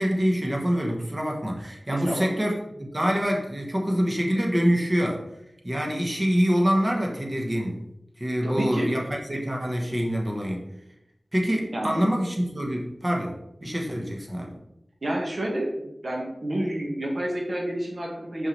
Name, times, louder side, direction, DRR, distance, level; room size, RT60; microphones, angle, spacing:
voice 1, 0.0-5.2 5.6-7.8 8.2-10.7 11.3-13.4 13.6-14.6, equal, 30° right, 0 dB, 1.2 m, -25 dB
voice 2, 1.9-2.3 8.4-8.9 11.7-12.0 15.0-18.5, right 1 dB, 60° right, -2 dB, 1.5 m, -29 dB
5.7 x 5.6 x 3.2 m, 0.85 s
wide cardioid pair, 65°, 0 cm